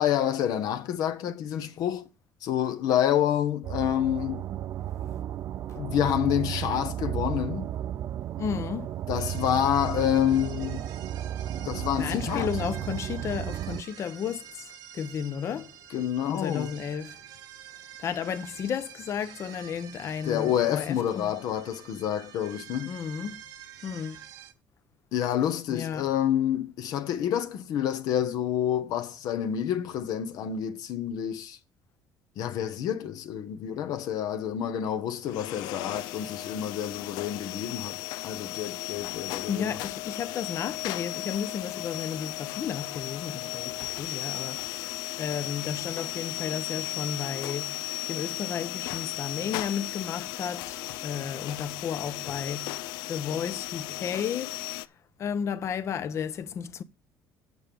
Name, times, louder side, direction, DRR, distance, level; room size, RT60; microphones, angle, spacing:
voice 1, 0.0-2.1 2.4-4.4 5.8-7.7 9.1-10.9 11.6-12.5 15.9-16.7 20.2-22.9 25.1-31.6 32.4-39.8, left 10 dB, 65° left, 1.1 m, -28 dB
sound 1, 3.6-13.8, right 12 dB, 45° right, 0.4 m, -34 dB
voice 2, 8.4-8.9 12.0-15.8 16.3-17.2 18.0-21.3 22.9-23.4 23.8-24.3 25.7-26.1 39.5-54.6 55.2-56.8, left 7 dB, 40° left, 0.8 m, -33 dB
sound 2, 9.1-24.5, right 10 dB, 65° right, 1.3 m, -48 dB
sound 3, 35.2-54.9, left 17 dB, 85° left, 0.4 m, -36 dB
8.1 x 6.8 x 5.2 m
cardioid pair, 140°, 7 cm